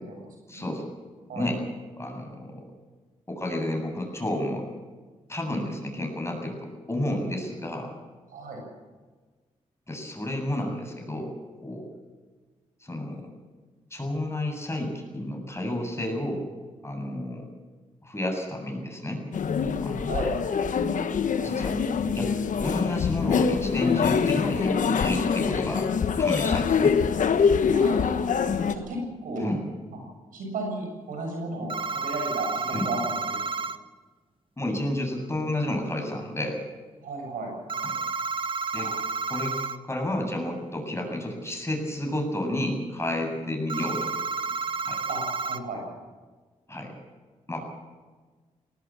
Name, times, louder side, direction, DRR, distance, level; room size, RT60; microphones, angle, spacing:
voice 1, 0.5-0.9 1.3-1.6 1.9-2.7 3.3-4.7 5.3-7.9 9.9-11.4 11.6-11.9 12.8-13.3 13.9-16.5 16.8-17.5 18.0-19.2 19.8-20.2 21.4-21.8 22.2-22.3 22.6-25.9 26.1-27.0 29.4-29.6 32.7-32.9 34.6-36.6 37.8-38.0 38.7-38.9 39.3-44.1 44.8-45.0 46.7-46.9 47.5-47.6, left 1 dB, 20° left, 3 dB, 8.0 m, -31 dB
voice 2, 8.3-8.6 20.0-20.3 27.7-29.4 30.3-33.4 37.0-37.5 38.8-38.9 45.1-45.2 45.5-45.8 47.6-47.7, right 2 dB, 85° right, 1 dB, 7.4 m, -34 dB
sound 1, 19.3-28.7, left 6 dB, 70° left, 1.2 m, -24 dB
sound 2, 31.7-33.8 37.7-39.8 43.7-45.6, right 4 dB, 40° right, 1.2 m, -30 dB
19.5 x 19.5 x 7.4 m, 1.4 s
supercardioid pair, 50°, 14 cm